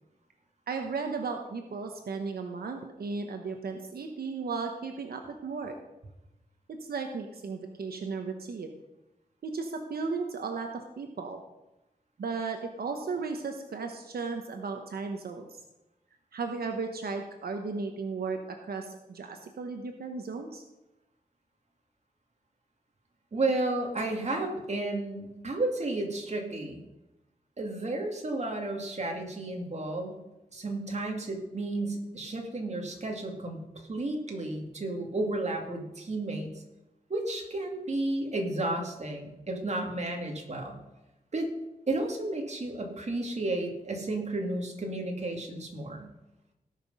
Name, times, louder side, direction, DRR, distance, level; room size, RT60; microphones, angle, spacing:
voice 1, 0.7-5.8 6.7-8.7 9.4-11.4 12.2-15.6 16.3-20.6, right 4 dB, 90° right, 4 dB, 1.1 m, -35 dB
voice 2, 23.3-26.8 27.6-30.2 30.5-36.5 37.1-40.8 41.3-41.5 41.9-46.0, right 2 dB, 45° right, 2 dB, 2.3 m, -32 dB
18.0 x 6.0 x 5.4 m, 0.97 s
wide cardioid pair, 100°, 16 cm